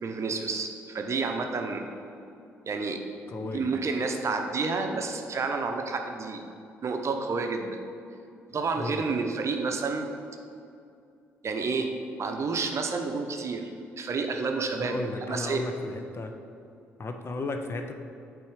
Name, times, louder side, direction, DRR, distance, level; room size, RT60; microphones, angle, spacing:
voice 1, 0.0-1.8 2.7-3.0 3.5-6.4 6.8-7.8 8.5-10.1 11.4-11.9 12.2-13.7 14.0-15.7, right 4 dB, 40° right, 4 dB, 0.7 m, -30 dB
voice 2, 3.3-3.7 8.8-9.0 14.8-16.4 17.0-17.9, left 3 dB, 35° left, 6 dB, 0.6 m, -34 dB
8.4 x 3.5 x 4.8 m, 2.6 s
figure-of-eight pair, 45°, 7 cm